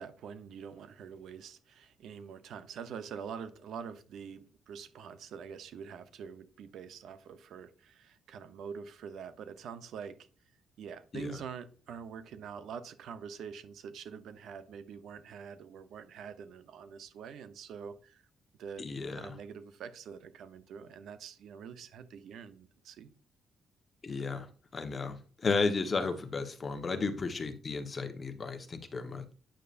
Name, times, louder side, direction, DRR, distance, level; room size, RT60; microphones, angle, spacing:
voice 1, 0.0-10.3 10.8-18.2 18.6-23.1, right 7 dB, 75° right, 12 dB, 0.8 m, -45 dB
voice 2, 18.8-19.3 24.0-24.5 24.7-29.3, left 4 dB, 30° left, 7 dB, 1.1 m, -34 dB
9.0 x 6.7 x 2.5 m, 0.40 s
cardioid pair, 140°, 0 cm